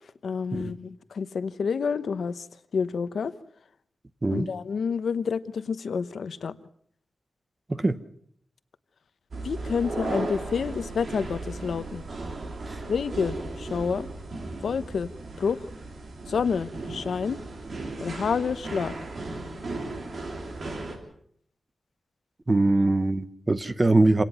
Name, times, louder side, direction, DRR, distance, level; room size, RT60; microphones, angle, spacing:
voice 1, 0.2-2.5 2.7-3.3 4.3-6.5 9.4-12.0 12.9-14.1 14.6-15.1 15.4-15.7 16.3-17.4 18.0-18.9, left 6 dB, 75° left, 13 dB, 0.9 m, -28 dB
sound 1, 9.3-21.0, right 2 dB, 50° right, 3.4 m, -36 dB
voice 2, 22.5-24.2, right 2 dB, 20° right, 12 dB, 0.9 m, -22 dB
27.5 x 17.5 x 5.7 m, 0.63 s
wide cardioid pair, 165°, 0 cm